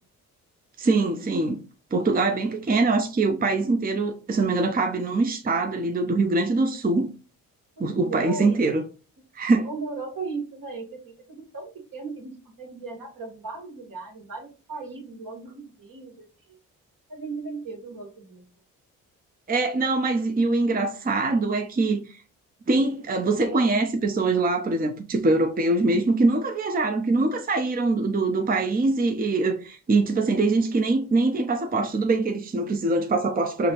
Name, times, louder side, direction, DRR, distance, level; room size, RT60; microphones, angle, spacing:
voice 1, 0.8-1.6 1.9-7.1 7.8-8.8 9.3-9.7 19.5-22.2 22.7-33.7, right 3 dB, 25° right, 0.6 m, -23 dB
voice 2, 7.8-8.7 9.6-16.6 17.1-18.4, right 3 dB, 60° right, 1.7 m, -37 dB
4.8 x 2.4 x 2.9 m
supercardioid pair, 50°, 37 cm